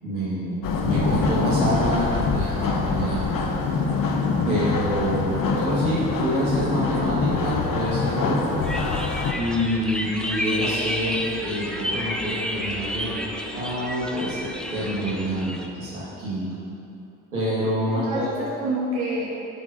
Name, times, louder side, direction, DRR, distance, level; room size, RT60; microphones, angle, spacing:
voice 1, 0.0-3.3 4.5-8.7 9.3-16.5 17.3-18.3, equal, 90° right, -10 dB, 2.5 m, -27 dB
sound 1, 0.6-9.3, left 4 dB, 50° left, 1.1 m, -24 dB
sound 2, 8.6-15.7, equal, ahead, 1.0 m, -31 dB
voice 2, 17.9-19.4, right 1 dB, 60° right, -6 dB, 1.9 m, -28 dB
11.0 x 6.0 x 5.3 m, 2.8 s
figure-of-eight pair, 45°, 42 cm